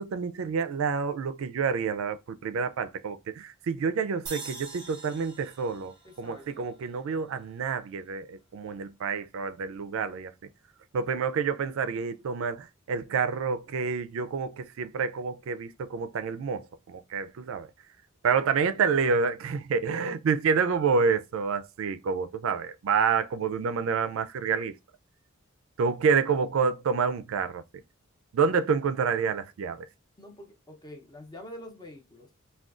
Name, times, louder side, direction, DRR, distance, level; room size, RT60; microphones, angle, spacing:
voice 1, 0.0-10.3 10.9-17.7 18.2-24.7 25.8-27.6 28.3-29.9, right 5 dB, 70° right, 0.3 m, -28 dB
sound 1, 4.3-7.5, right 3 dB, 20° right, 0.7 m, -45 dB
voice 2, 6.0-6.7 30.2-32.3, left 1 dB, 20° left, 0.7 m, -46 dB
3.6 x 2.2 x 2.4 m
head